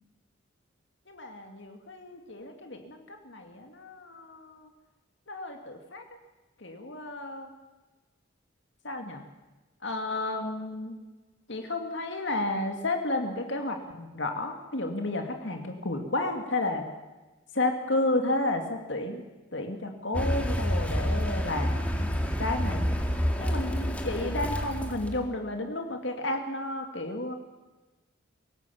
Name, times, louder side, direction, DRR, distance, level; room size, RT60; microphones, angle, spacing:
voice 1, 1.1-4.7 5.3-6.0 6.6-7.5 8.8-9.2 9.8-11.0 11.5-16.8 17.5-22.8 23.4-27.3, left 2 dB, 65° left, 4 dB, 2.4 m, -32 dB
Car, 20.1-25.3, equal, 5° left, 2.2 m, -29 dB
24.0 x 18.5 x 7.1 m, 1.2 s
head